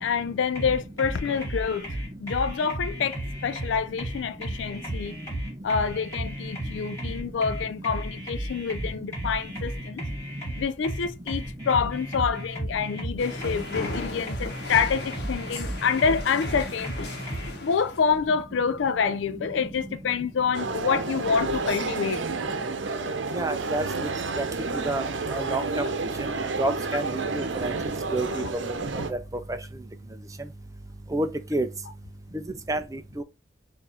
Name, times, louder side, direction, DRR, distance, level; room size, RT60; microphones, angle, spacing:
voice 1, 0.0-5.2 5.6-10.0 10.6-17.1 17.6-22.2 28.4-28.5, left 6 dB, 75° left, 0.4 m, -27 dB
sound 1, 0.5-17.5, right 1 dB, 15° left, 2.3 m, -34 dB
sound 2, 13.2-18.1, left 2 dB, 55° left, 1.0 m, -37 dB
sound 3, 20.5-29.1, right 3 dB, 80° right, 0.8 m, -30 dB
voice 2, 23.3-23.8 24.4-24.5 24.8-25.0 25.3-25.9 26.6-27.7 28.1-28.4 29.1-29.2 31.1-31.7 32.7-33.2, right 2 dB, 15° right, 0.5 m, -28 dB
4.6 x 2.6 x 4.2 m
head